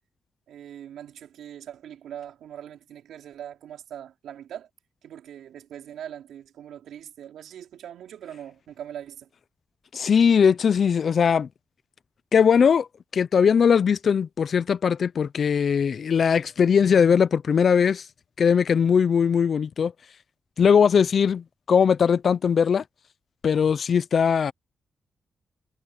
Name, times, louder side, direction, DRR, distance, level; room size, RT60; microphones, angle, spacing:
voice 1, 0.5-4.7 5.0-9.3, right 10 dB, 90° right, 4.4 m, -41 dB
voice 2, 9.9-11.5 12.3-12.9 13.1-18.0 18.4-19.9 20.6-22.8 23.4-24.5, left 7 dB, 65° left, 0.6 m, -20 dB
cardioid pair, 60°, 0 cm